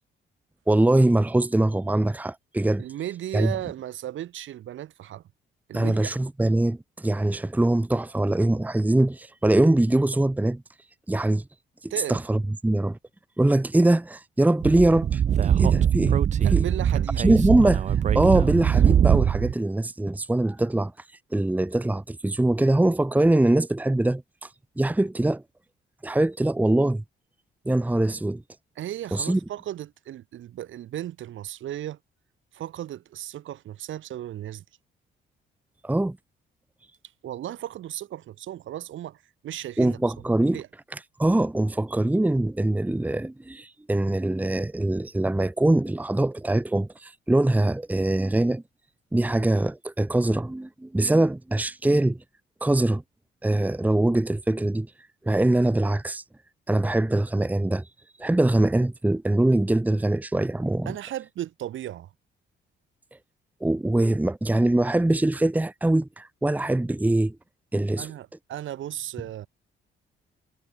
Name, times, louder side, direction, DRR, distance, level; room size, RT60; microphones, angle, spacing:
voice 1, 0.7-2.8 3.3-3.5 5.7-10.6 11.1-11.4 11.8-13.0 13.4-15.2 15.6-16.2 16.5-16.6 17.2-17.9 18.1-20.9 21.3-24.5 24.8-25.4 26.0-27.0 27.6-28.4 29.1-29.4 35.8-36.2 39.8-40.6 40.9-48.6 49.1-52.2 52.6-53.0 53.4-54.9 55.2-56.2 56.7-57.9 58.2-60.9 63.6-67.4 67.7-68.1, right 1 dB, 10° right, 1.0 m, -23 dB
voice 2, 2.8-5.2 5.7-6.1 11.9-12.2 16.4-17.2 28.8-32.0 32.5-34.6 37.2-40.0 40.5-40.7 60.9-62.1 68.0-69.5, right 12 dB, 75° right, 5.4 m, -35 dB
Speech / Wind, 14.6-19.5, right 9 dB, 35° right, 0.4 m, -21 dB
cardioid pair, 90°, 20 cm